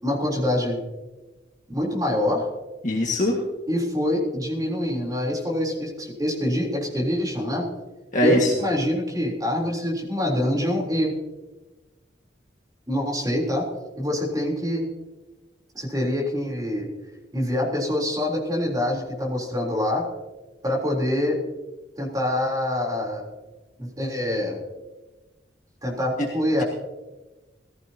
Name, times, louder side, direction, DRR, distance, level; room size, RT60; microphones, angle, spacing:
voice 1, 0.0-0.8 1.7-2.5 3.7-7.7 8.2-11.1 12.9-13.7 14.0-14.9 15.7-16.9 17.3-20.0 20.6-21.4 22.0-23.3 23.8-24.6 25.8-26.6, left 1 dB, 20° right, -2 dB, 3.6 m, -25 dB
voice 2, 2.8-3.3 8.1-8.5, left 1 dB, 45° left, -1 dB, 1.8 m, -21 dB
21.0 x 14.5 x 2.9 m, 1.2 s
head